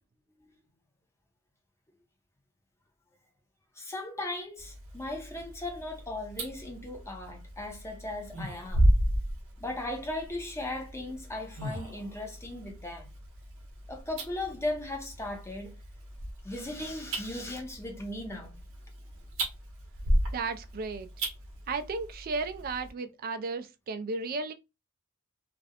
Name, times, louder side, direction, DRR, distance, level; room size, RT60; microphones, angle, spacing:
voice 1, 3.8-8.8 9.6-13.1 13.9-15.7 16.4-18.6, left 2 dB, 10° left, 0.6 m, -37 dB
sound 1, 4.6-22.9, right 1 dB, 65° right, 0.8 m, -34 dB
voice 2, 20.3-21.1 21.7-24.5, right 4 dB, 40° right, 0.3 m, -34 dB
2.4 x 2.0 x 2.7 m
head